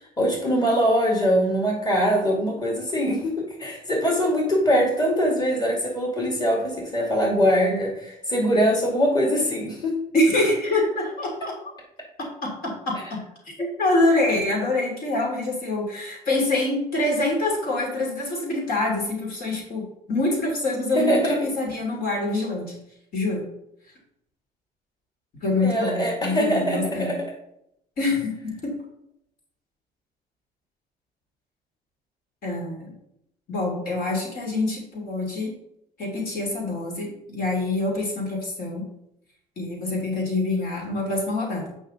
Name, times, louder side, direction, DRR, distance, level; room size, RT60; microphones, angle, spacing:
voice 1, 0.2-10.0 20.9-21.4 25.6-27.2, equal, 25° left, -1 dB, 2.5 m, -22 dB
voice 2, 10.1-11.5 12.2-13.2 13.6-22.7 23.1-23.5 25.4-27.1 28.0-28.8 32.4-32.9 33.5-35.5 36.0-38.9 39.6-41.7, left 2 dB, 60° left, -1 dB, 2.9 m, -25 dB
8.6 x 5.5 x 3.8 m, 0.77 s
cardioid pair, 110°, 17 cm